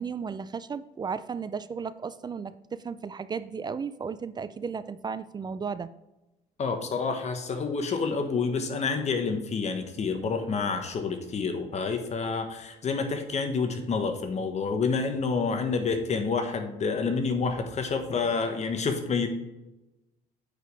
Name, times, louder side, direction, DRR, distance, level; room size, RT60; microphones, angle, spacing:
voice 1, 0.0-5.9, right 6 dB, 25° right, 14 dB, 0.4 m, -34 dB
voice 2, 6.6-19.3, left 4 dB, 40° left, 6 dB, 1.2 m, -28 dB
8.9 x 5.0 x 3.3 m, 0.99 s
cardioid pair, 110°, 17 cm